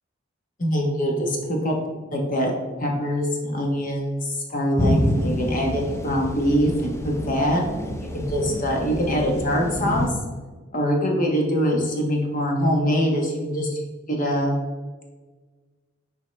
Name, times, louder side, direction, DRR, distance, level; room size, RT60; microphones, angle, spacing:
voice 1, 0.6-1.8 2.1-2.5 2.8-7.6 8.1-10.1 10.7-13.8 14.1-14.6, equal, 45° left, 0 dB, 1.2 m, -23 dB
sound 1, 4.8-10.1, left 1 dB, 15° left, 0.5 m, -27 dB
7.3 x 4.7 x 3.3 m, 1.3 s
head